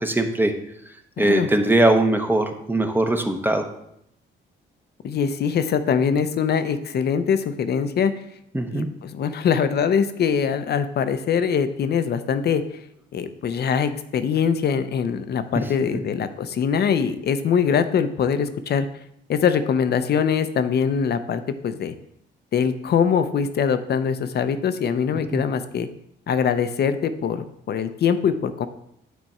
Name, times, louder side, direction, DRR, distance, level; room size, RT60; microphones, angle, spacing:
voice 1, 0.0-0.5 1.2-3.7 8.5-8.9 25.3-25.4, right 2 dB, 10° right, 5 dB, 0.7 m, -20 dB
voice 2, 1.2-1.5 5.0-8.1 8.7-12.8 13.1-18.9 19.3-21.9 22.5-25.9 26.3-28.7, left 7 dB, 55° left, 11 dB, 0.6 m, -23 dB
9.2 x 3.5 x 4.3 m, 0.77 s
cardioid pair, 90°, 20 cm